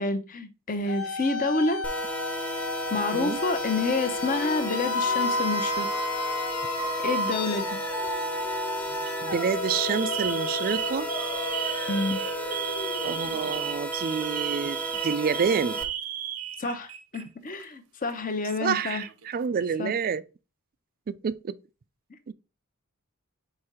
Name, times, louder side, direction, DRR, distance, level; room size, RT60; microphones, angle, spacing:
voice 1, 0.0-1.8 2.9-6.0 7.0-7.8 11.9-12.2 16.6-19.0 19.8-19.9, left 3 dB, 40° left, 0.8 m, -28 dB
sound 1, 0.9-13.7, left 3 dB, 75° left, 0.9 m, -32 dB
sound 2, 1.8-15.8, right 2 dB, 5° left, 0.8 m, -34 dB
Alarm, 6.8-7.3 8.2-8.5 8.9-9.1 9.7-17.2 17.5-17.6 18.6-19.3, right 10 dB, 70° right, 0.7 m, -34 dB
voice 2, 9.2-11.1 13.0-15.8 18.6-20.2 21.1-21.6 22.3-22.4, right 6 dB, 40° right, 0.3 m, -28 dB
4.5 x 4.4 x 4.9 m
head